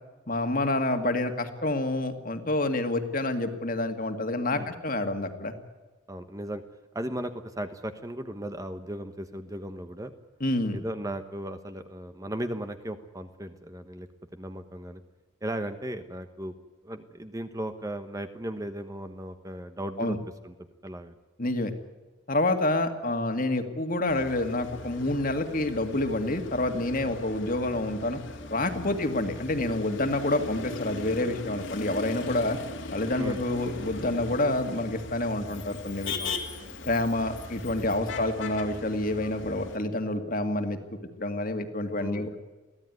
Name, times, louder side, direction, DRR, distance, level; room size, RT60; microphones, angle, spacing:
voice 1, 0.3-5.5 10.4-10.8 20.0-20.2 21.4-21.7 22.3-28.2 28.5-32.6 32.9-36.1 36.8-40.8 41.2-42.3, left 2 dB, 40° left, 7 dB, 2.2 m, -28 dB
voice 2, 6.1-6.6 6.9-10.1 10.7-14.1 14.3-15.0 15.4-16.5 16.8-20.2 20.4-20.5 20.8-21.1 28.9-29.0 33.2-33.4 36.2-36.8 38.0-38.2 42.0-42.2, right 1 dB, 15° right, 8 dB, 1.1 m, -36 dB
Motor vehicle (road), 24.1-39.8, left 3 dB, 60° left, 2.5 m, -39 dB
23.0 x 16.0 x 9.5 m, 1.2 s
head